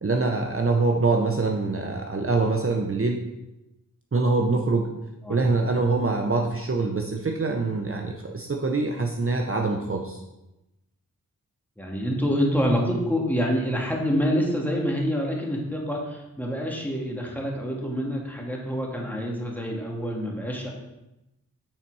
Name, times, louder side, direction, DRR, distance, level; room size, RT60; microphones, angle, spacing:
voice 1, 0.0-3.2 4.1-4.9 5.3-10.2, right 3 dB, 40° right, 2 dB, 0.9 m, -24 dB
voice 2, 11.8-20.7, equal, 5° left, -2 dB, 1.9 m, -27 dB
8.9 x 4.2 x 4.8 m, 0.95 s
wide cardioid pair, 60°, 34 cm